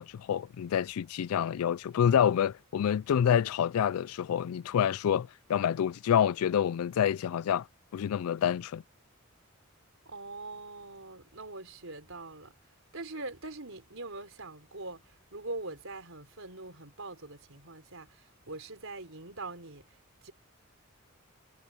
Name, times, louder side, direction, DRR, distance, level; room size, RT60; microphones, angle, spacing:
voice 1, 0.0-7.7 7.9-8.8, left 9 dB, 85° left, 0.3 m, -27 dB
voice 2, 10.0-12.5 12.9-18.2 18.5-19.8 20.2-20.3, right 2 dB, 65° right, 4.8 m, -43 dB
head